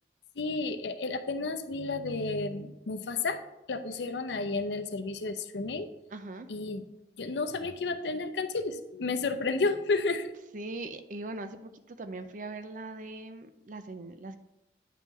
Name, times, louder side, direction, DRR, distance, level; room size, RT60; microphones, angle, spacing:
voice 1, 0.4-3.4 3.7-5.9 6.5-6.8 7.2-10.3, left 3 dB, 75° left, 10 dB, 0.6 m, -31 dB
voice 2, 6.1-6.5 10.5-14.4, right 2 dB, 45° right, 10 dB, 0.5 m, -40 dB
9.3 x 5.5 x 3.1 m, 0.92 s
head